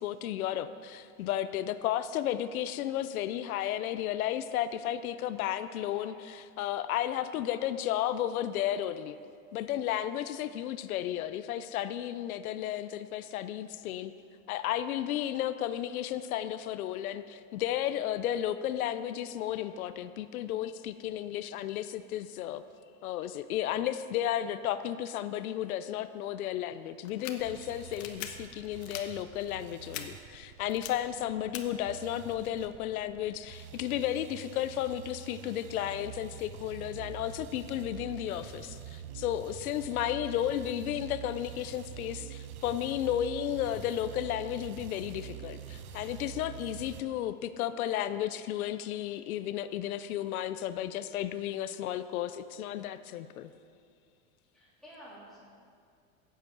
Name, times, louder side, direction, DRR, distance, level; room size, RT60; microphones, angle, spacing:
voice 1, 0.0-9.2 9.5-14.1 14.5-22.6 23.0-53.5, left 11 dB, 90° left, 12 dB, 0.7 m, -33 dB
voice 2, 5.4-6.1 7.2-7.6 54.5-55.4, equal, ahead, -9 dB, 3.6 m, -53 dB
sound 1, 27.0-27.3 27.9-28.3 28.8-29.0 29.9-30.0 30.7-30.9 31.5-31.6, left 13 dB, 65° left, 1.2 m, -40 dB
sound 2, 27.4-47.0, right 10 dB, 25° right, 0.4 m, -46 dB
15.5 x 8.3 x 6.1 m, 2.2 s
supercardioid pair, 170°, 42 cm